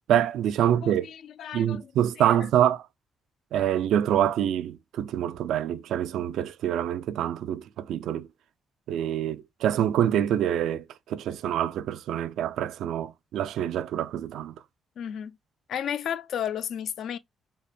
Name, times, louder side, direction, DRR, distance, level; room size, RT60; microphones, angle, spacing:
voice 1, 0.1-1.1 1.5-2.8 3.5-8.3 8.9-14.5, right 10 dB, 80° right, 0.3 m, -26 dB
voice 2, 0.8-1.8 2.2-2.4 15.0-15.4 15.7-17.2, left 9 dB, 70° left, 0.3 m, -33 dB
4.0 x 2.2 x 3.3 m
cardioid pair, 90°, 0 cm